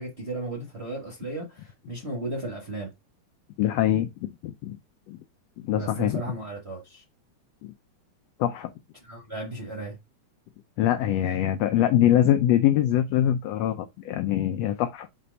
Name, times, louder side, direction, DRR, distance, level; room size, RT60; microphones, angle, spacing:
voice 1, 0.0-2.9 5.7-7.0 9.0-10.0, right 2 dB, 35° right, 1.0 m, -35 dB
voice 2, 3.6-4.8 5.1-5.2 5.6-6.2 7.6-7.7 8.4-8.7 10.8-15.1, left 11 dB, 85° left, 1.4 m, -23 dB
5.6 x 3.4 x 5.2 m
omnidirectional pair, 3.5 m